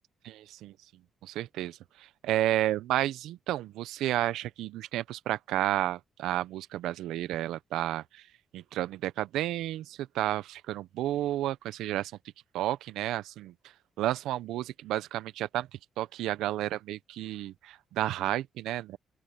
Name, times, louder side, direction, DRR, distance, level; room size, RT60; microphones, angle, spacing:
voice 1, 0.2-0.7 1.2-8.2 8.5-12.1 12.5-13.5 14.0-15.7 16.0-19.0, right 14 dB, 80° right, 1.0 m, -31 dB
open air
hypercardioid pair, 45°, 0 cm